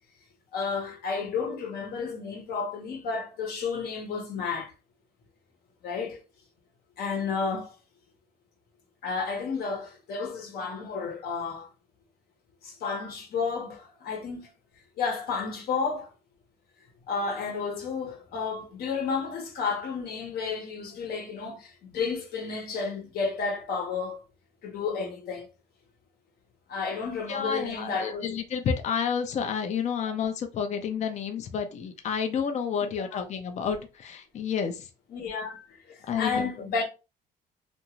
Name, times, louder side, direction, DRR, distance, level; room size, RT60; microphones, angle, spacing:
voice 1, 0.5-4.7 5.8-6.2 7.0-7.7 9.0-11.7 12.6-14.5 15.0-16.1 17.1-24.2 24.6-25.5 26.7-28.4 32.8-33.2 35.1-36.8, left 5 dB, 65° left, 1.0 m, -32 dB
voice 2, 27.1-34.9 36.1-36.5, left 7 dB, 45° left, 0.5 m, -30 dB
2.5 x 2.4 x 3.0 m
cardioid pair, 110°, 17 cm